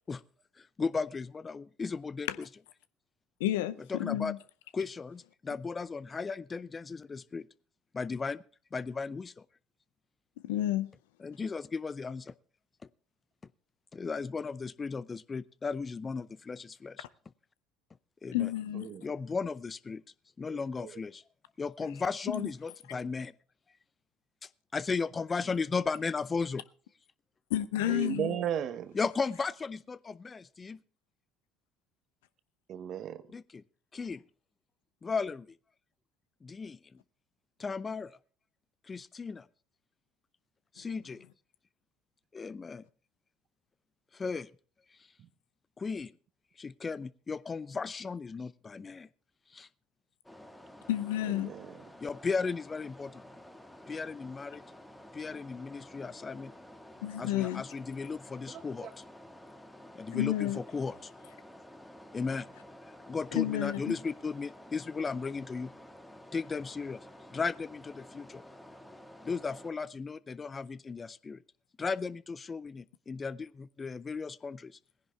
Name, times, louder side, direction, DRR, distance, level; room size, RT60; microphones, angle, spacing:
voice 1, 0.6-2.5 3.8-4.3 4.7-7.5 7.9-8.4 8.7-9.4 11.2-12.3 13.9-17.1 18.2-18.5 19.0-20.0 20.4-21.2 21.6-23.3 24.7-26.6 29.0-30.8 33.3-33.6 33.9-34.2 35.0-35.5 36.4-36.8 37.6-38.2 38.9-39.5 40.7-41.2 42.3-42.8 44.1-44.5 45.8-46.1 46.6-49.1 49.5-49.7 52.0-53.2 53.9-54.6 55.1-56.5 57.2-58.9 59.9-61.1 62.1-62.5 63.1-65.7 66.3-67.0 67.3-68.4 69.2-71.4 71.8-74.8, left 4 dB, 30° left, 0.5 m, -35 dB
voice 2, 3.4-4.4 10.4-10.9 18.3-18.9 22.3-22.5 27.5-28.3 50.9-51.5 57.0-57.6 60.1-60.6 63.3-64.0, left 13 dB, 75° left, 0.6 m, -31 dB
voice 3, 18.7-19.1 20.5-21.0 22.9-23.0 27.9-29.0 32.7-33.3 45.2-45.3 51.2-51.9 57.2-57.3 58.5-58.9, right 9 dB, 55° right, 0.9 m, -37 dB
sound 1, 50.2-69.7, left 1 dB, 5° left, 1.6 m, -51 dB
18.0 x 10.5 x 3.4 m
hypercardioid pair, 65°, 0 cm